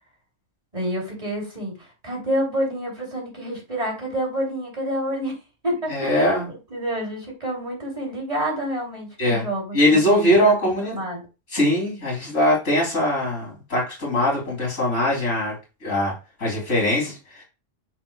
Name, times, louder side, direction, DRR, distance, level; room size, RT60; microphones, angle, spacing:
voice 1, 0.7-5.3 5.6-10.5 10.8-11.2, right 1 dB, 30° right, 3.2 m, -28 dB
voice 2, 5.9-6.5 9.2-9.5 9.7-11.0 11.5-16.1 16.4-17.4, left 1 dB, 85° left, 3.6 m, -21 dB
8.6 x 6.8 x 2.4 m
omnidirectional pair, 1.3 m